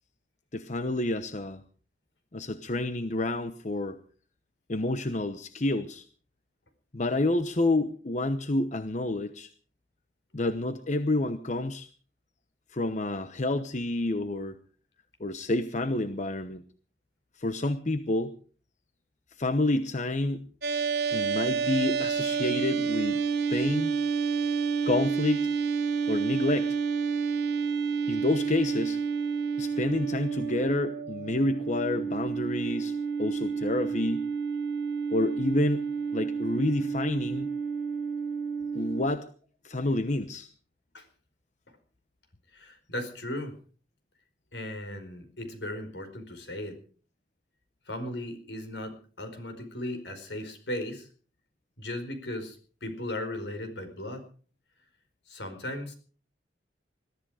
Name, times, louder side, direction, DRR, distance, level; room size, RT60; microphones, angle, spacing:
voice 1, 0.5-1.6 2.3-4.0 4.7-6.0 6.9-9.5 10.3-11.9 12.7-14.6 15.2-16.6 17.4-18.3 19.4-20.5 21.1-24.0 24.8-25.5 26.1-26.8 28.1-29.0 29.6-32.9 33.2-34.3 35.1-37.5 38.7-39.3 39.6-40.5, left 2 dB, 45° left, 10 dB, 1.0 m, -29 dB
sound 1, 20.6-39.0, right 5 dB, 65° right, 4.2 m, -29 dB
voice 2, 42.5-43.6 44.5-46.8 47.9-51.1 51.8-52.6 52.8-54.2 55.3-55.9, left 1 dB, 80° left, 7 dB, 4.7 m, -37 dB
21.5 x 13.0 x 5.0 m, 0.42 s
head